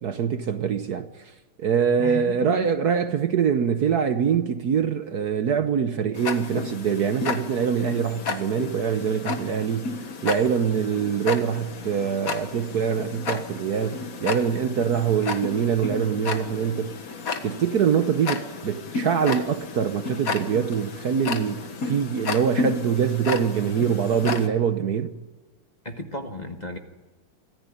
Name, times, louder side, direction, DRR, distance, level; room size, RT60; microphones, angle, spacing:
voice 1, 0.0-10.0 10.2-17.0 17.4-25.2, right 7 dB, 55° right, 1.3 m, -24 dB
voice 2, 2.0-2.7 25.8-26.8, left 2 dB, 25° left, 1.3 m, -34 dB
Tick-tock, 6.1-24.5, left 4 dB, 45° left, 1.8 m, -32 dB
26.5 x 14.5 x 9.9 m
omnidirectional pair, 2.2 m